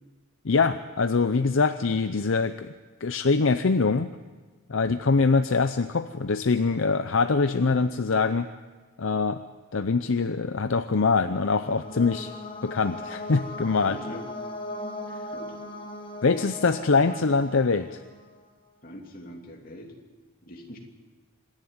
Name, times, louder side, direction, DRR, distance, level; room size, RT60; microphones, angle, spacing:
voice 1, 0.4-2.7 3.0-4.1 4.7-8.5 9.0-9.4 9.7-12.3 12.6-14.0 16.2-18.0, left 4 dB, 65° left, 10 dB, 0.6 m, -23 dB
sound 1, 10.8-18.5, left 1 dB, 25° left, 1.4 m, -39 dB
voice 2, 13.8-14.2 15.3-15.5 18.8-19.9 20.4-20.8, equal, 40° left, 1 dB, 2.8 m, -42 dB
25.5 x 11.0 x 9.3 m, 1.3 s
head